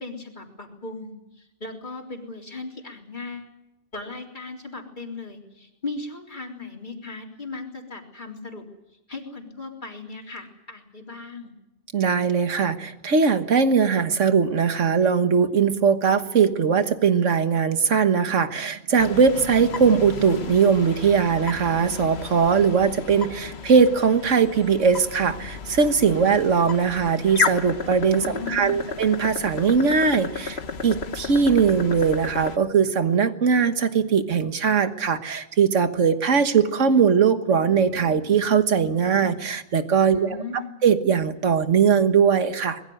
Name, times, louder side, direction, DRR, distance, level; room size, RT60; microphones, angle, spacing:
voice 1, 0.0-3.5 3.9-8.6 9.1-11.5 28.2-28.8 40.1-40.7, left 3 dB, 40° left, 1 dB, 3.9 m, -37 dB
voice 2, 11.9-40.4 40.8-42.8, right 6 dB, 80° right, 9 dB, 1.8 m, -20 dB
sound 1, 19.0-32.6, left 5 dB, 60° left, 1.5 m, -33 dB
24.0 x 21.0 x 7.9 m, 0.89 s
omnidirectional pair, 1.3 m